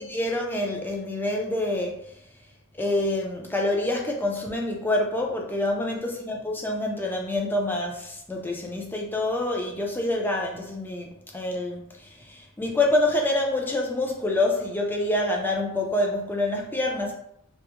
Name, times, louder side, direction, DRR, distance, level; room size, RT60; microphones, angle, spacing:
voice 1, 0.0-2.2 2.7-17.1, left 1 dB, 10° left, 0.3 m, -27 dB
2.2 x 2.0 x 2.8 m
head